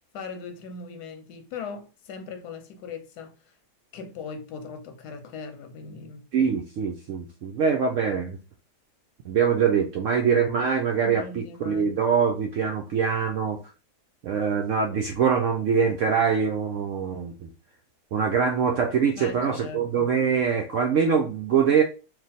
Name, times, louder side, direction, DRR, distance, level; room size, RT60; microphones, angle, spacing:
voice 1, 0.1-3.3 3.9-6.3 11.0-11.9 19.2-20.1, left 5 dB, 85° left, 1.3 m, -39 dB
voice 2, 6.3-8.4 9.2-13.6 14.2-17.5 18.1-21.8, right 6 dB, 70° right, 0.7 m, -24 dB
3.1 x 2.4 x 4.0 m
omnidirectional pair, 1.7 m